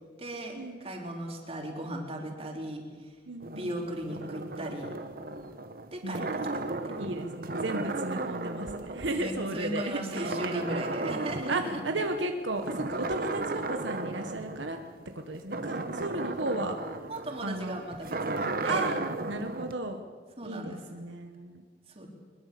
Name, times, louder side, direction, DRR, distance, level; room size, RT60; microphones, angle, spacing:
voice 1, 0.2-3.2 3.6-4.9 5.9-7.1 9.1-11.8 17.1-18.9 20.4-20.8 21.9-22.1, right 1 dB, 30° right, 1 dB, 3.4 m, -37 dB
voice 2, 3.3-3.8 6.0-6.3 7.0-11.1 11.5-14.8 15.1-16.8 17.4-17.8 18.7-19.0 19.3-20.0 20.4-21.6, right 2 dB, 80° right, 5 dB, 1.4 m, -34 dB
sound 1, 3.4-9.8 10.1-12.2 12.6-19.7, right 2 dB, 50° right, 1.3 m, -35 dB
22.5 x 21.5 x 6.9 m, 1.5 s
head